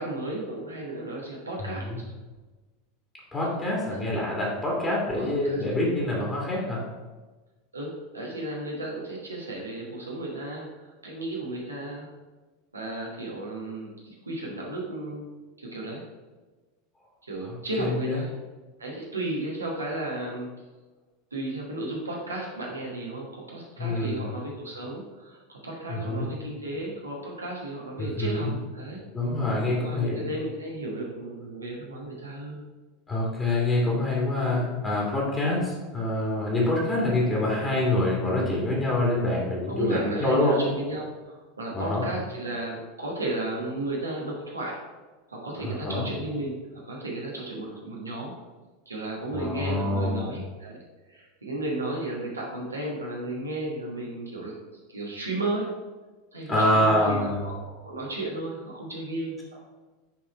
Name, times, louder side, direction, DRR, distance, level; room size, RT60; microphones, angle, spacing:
voice 1, 0.0-1.9 3.9-4.1 5.2-5.6 7.7-12.1 12.7-15.3 15.6-16.0 17.2-18.3 18.8-20.5 21.3-29.0 29.8-32.6 34.4-34.7 37.0-37.3 39.7-44.8 45.3-48.3 48.9-50.8 51.1-54.5 54.9-55.7 56.3-59.4, right 2 dB, 80° right, -3 dB, 1.3 m, -34 dB
voice 2, 1.6-2.0 3.3-6.8 17.4-18.2 23.8-24.2 25.9-26.3 28.0-28.5 29.1-30.2 33.1-40.6 41.7-42.0 45.6-46.0 49.3-50.2 56.5-57.4, left 1 dB, 15° left, -4 dB, 1.8 m, -26 dB
6.0 x 4.1 x 4.3 m, 1.2 s
figure-of-eight pair, 80°, 0 cm